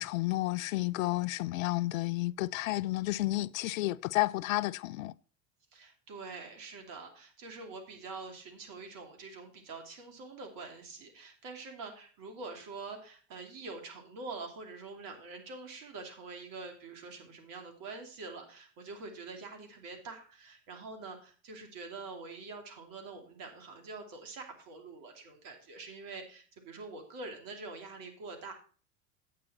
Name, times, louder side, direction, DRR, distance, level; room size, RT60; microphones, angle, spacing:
voice 1, 0.0-5.1, left 18 dB, 70° left, 0.5 m, -31 dB
voice 2, 5.7-28.5, right 3 dB, 50° right, 2.8 m, -45 dB
9.3 x 8.5 x 4.2 m
hypercardioid pair, 80°, 41 cm